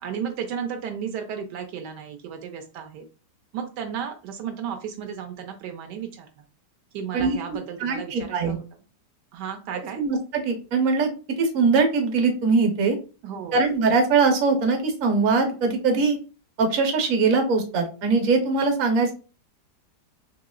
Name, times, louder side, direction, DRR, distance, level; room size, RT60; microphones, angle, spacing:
voice 1, 0.0-3.0 3.5-6.4 6.9-8.6 9.3-10.0 13.2-13.6, right 7 dB, 80° right, 5 dB, 1.2 m, -34 dB
voice 2, 7.8-8.6 10.0-11.1 11.4-13.0 13.5-16.2 16.6-19.1, right 4 dB, 55° right, 4 dB, 1.2 m, -21 dB
4.3 x 2.9 x 2.3 m, 0.35 s
omnidirectional pair, 1.8 m